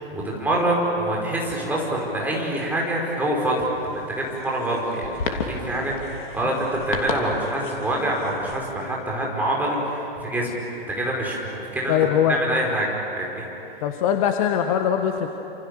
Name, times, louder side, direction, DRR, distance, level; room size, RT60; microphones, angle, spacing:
voice 1, 0.1-12.0 12.3-12.9 13.2-13.5 13.8-13.9, right 1 dB, 5° right, -3 dB, 5.4 m, -26 dB
sound 1, 3.5-8.6, left 4 dB, 55° left, 3.1 m, -34 dB
voice 2, 11.9-12.4 13.8-15.3, left 9 dB, 35° left, 6 dB, 1.4 m, -21 dB
29.0 x 27.5 x 6.9 m, 2.9 s
figure-of-eight pair, 115°, 30 cm